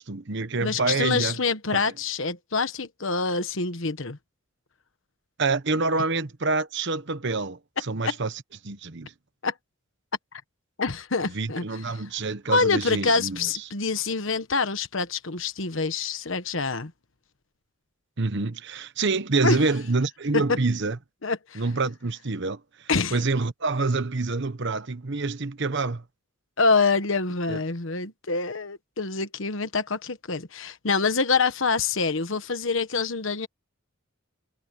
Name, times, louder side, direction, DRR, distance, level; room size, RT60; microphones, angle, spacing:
voice 1, 0.1-1.4 1.7-1.9 5.4-8.3 8.6-9.1 11.3-13.5 18.2-21.0 21.5-26.0 27.5-27.6, right 3 dB, 55° right, 1.0 m, -27 dB
voice 2, 0.6-4.2 8.0-8.2 9.4-9.5 10.8-12.0 12.5-16.9 19.4-19.6 20.3-20.6 21.2-21.6 22.9-23.2 26.6-33.5, left 4 dB, 65° left, 1.2 m, -26 dB
head